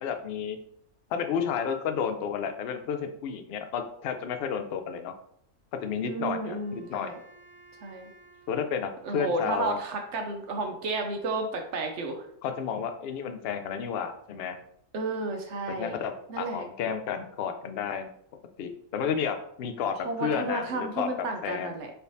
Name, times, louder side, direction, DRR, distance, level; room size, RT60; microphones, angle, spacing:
voice 1, 0.0-0.6 1.1-5.1 5.8-7.1 8.5-9.8 12.4-14.6 15.7-18.1 18.6-21.1 21.4-21.8, left 7 dB, 65° left, 7 dB, 0.6 m, -31 dB
Wind instrument woodwind instrument, 5.8-9.8, right 3 dB, 40° right, 1.5 m, -57 dB
voice 2, 6.1-7.2 7.8-8.1 9.0-12.3 14.9-16.0 16.3-16.7 20.0-21.9, right 2 dB, 65° right, 4 dB, 0.8 m, -32 dB
4.1 x 3.4 x 2.6 m, 0.67 s
omnidirectional pair, 1.4 m